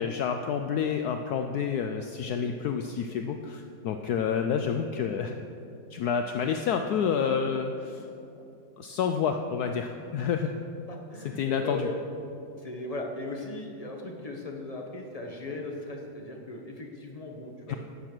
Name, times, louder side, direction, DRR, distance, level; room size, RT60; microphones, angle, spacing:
voice 1, 0.0-5.3 5.9-8.0 8.8-10.5 11.4-11.9 17.7-17.8, left 7 dB, 70° left, 6 dB, 1.0 m, -29 dB
voice 2, 10.9-12.0 12.6-17.8, left 2 dB, 25° left, 1 dB, 1.0 m, -38 dB
11.5 x 7.7 x 6.1 m, 2.7 s
omnidirectional pair, 1.9 m